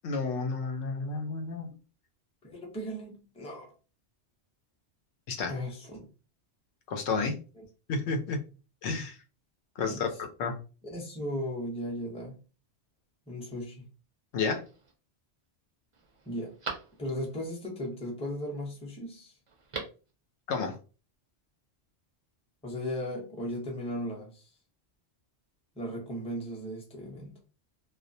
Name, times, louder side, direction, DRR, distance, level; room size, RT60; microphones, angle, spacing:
voice 1, 0.0-1.7 5.3-5.5 6.9-7.4 7.9-8.4 8.8-9.2 9.8-10.1 10.4-10.6 14.3-14.6 20.5-20.8, left 4 dB, 85° left, 0.9 m, -31 dB
voice 2, 2.4-3.7 5.5-6.1 7.6-7.7 9.8-10.1 10.8-12.4 13.3-13.9 16.3-16.6 17.0-19.3 22.6-24.5 25.8-27.4, equal, 5° left, 0.5 m, -36 dB
Telephone, 14.3-14.9 15.4-15.5 15.9-17.4 19.5-20.1 20.4-20.5, right 4 dB, 45° right, 0.4 m, -42 dB
2.3 x 2.1 x 2.6 m
omnidirectional pair, 1.1 m